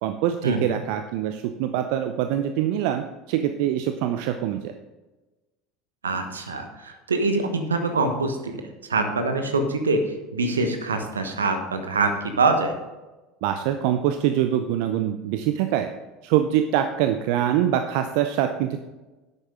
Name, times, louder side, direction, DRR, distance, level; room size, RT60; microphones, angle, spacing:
voice 1, 0.0-4.7 13.4-15.9 16.2-18.8, right 11 dB, 60° right, 8 dB, 0.5 m, -24 dB
voice 2, 6.0-8.6 8.9-10.0 10.3-12.7, right 3 dB, 80° right, 6 dB, 1.1 m, -24 dB
11.0 x 8.1 x 3.7 m, 1.1 s
figure-of-eight pair, 70°, 0 cm